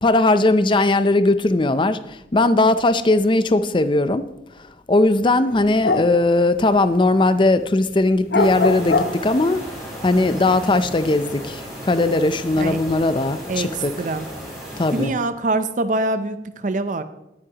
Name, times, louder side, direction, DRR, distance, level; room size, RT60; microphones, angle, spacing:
voice 1, 0.0-4.3 4.9-9.6 10.0-13.9 14.8-15.1, left 2 dB, 30° left, 12 dB, 0.5 m, -18 dB
sound 1, 5.5-7.3 7.6-9.6 10.0-11.7 12.1-12.9, left 3 dB, 60° left, 0.7 m, -24 dB
sound 2, 8.4-15.1, equal, ahead, 5.2 m, -35 dB
voice 2, 14.9-17.0, right 2 dB, 45° right, 11 dB, 0.6 m, -24 dB
18.5 x 9.9 x 2.9 m, 0.91 s
head